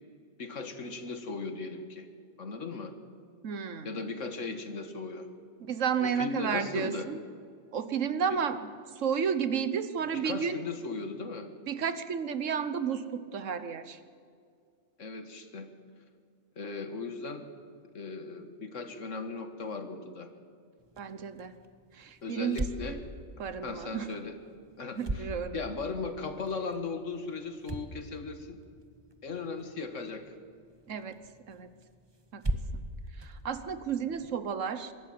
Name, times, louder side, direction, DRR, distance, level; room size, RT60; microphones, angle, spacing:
voice 1, 0.4-2.1 2.4-2.9 3.8-5.3 6.0-7.1 8.3-8.4 10.1-11.5 15.0-15.7 16.6-17.4 17.9-20.3 22.2-23.0 23.6-24.4 24.8-25.3 25.5-28.6 29.2-30.4, left 4 dB, 70° left, 8 dB, 2.0 m, -37 dB
voice 2, 3.4-4.0 5.6-7.2 7.7-8.7 9.0-10.6 11.7-14.0 21.0-21.5 21.9-23.0 23.4-24.1 24.9-25.7 30.9-31.2 31.5-31.7 32.3-32.4 32.7-32.8 33.2-34.9, right 7 dB, 75° right, 12 dB, 1.4 m, -32 dB
sound 1, 20.8-34.4, right 1 dB, 20° right, 1.1 m, -42 dB
23.5 x 13.5 x 9.5 m, 2.2 s
omnidirectional pair, 1.3 m